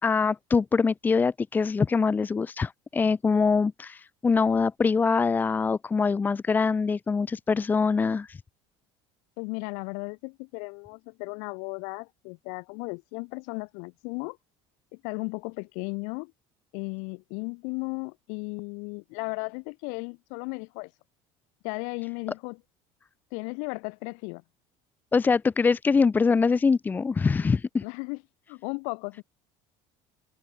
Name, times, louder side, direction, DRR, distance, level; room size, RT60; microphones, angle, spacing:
voice 1, 0.0-8.4 25.1-27.8, left 5 dB, 15° left, 1.6 m, -24 dB
voice 2, 9.4-14.4 14.9-16.3 16.7-20.9 21.6-22.6 23.3-24.4 27.8-28.2 28.5-29.2, left 39 dB, 70° left, 7.9 m, -35 dB
cardioid pair, 175°, 13 cm